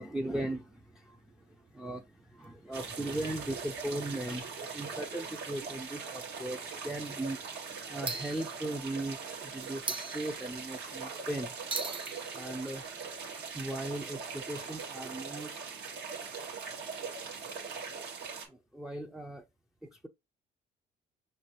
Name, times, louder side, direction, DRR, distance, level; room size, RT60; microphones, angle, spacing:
voice 1, 0.0-11.5 12.3-12.8 13.3-15.8 17.3-17.4 18.5-19.4 19.8-20.1, right 1 dB, 5° right, 0.4 m, -38 dB
sound 1, 0.6-1.7 2.4-2.5 2.7-2.8 4.3-4.4 4.9-5.3 5.6-5.8 6.5-6.9 8.1-9.1 9.6-10.9 11.7-15.5, right 4 dB, 30° right, 0.9 m, -43 dB
sound 2, 2.7-18.5, right 5 dB, 85° right, 1.6 m, -41 dB
5.8 x 3.2 x 2.8 m
cardioid pair, 110°, 17 cm